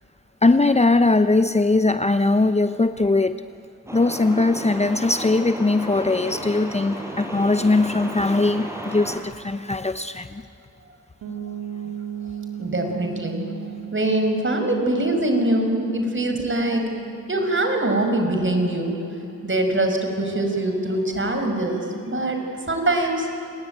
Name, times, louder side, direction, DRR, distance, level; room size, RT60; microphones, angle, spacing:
voice 1, 0.4-3.4 3.9-10.4, left 2 dB, 20° left, 10 dB, 0.9 m, -20 dB
Truck, 3.9-9.2, equal, 10° right, 6.0 m, -33 dB
sound 1, 11.2-20.9, right 10 dB, 85° right, 3.2 m, -38 dB
voice 2, 12.6-13.5 13.9-16.9 17.3-19.0 19.4-22.4 22.7-23.3, right 1 dB, 40° right, 5 dB, 5.8 m, -23 dB
28.0 x 20.0 x 9.1 m, 2.7 s
cardioid pair, 50°, 32 cm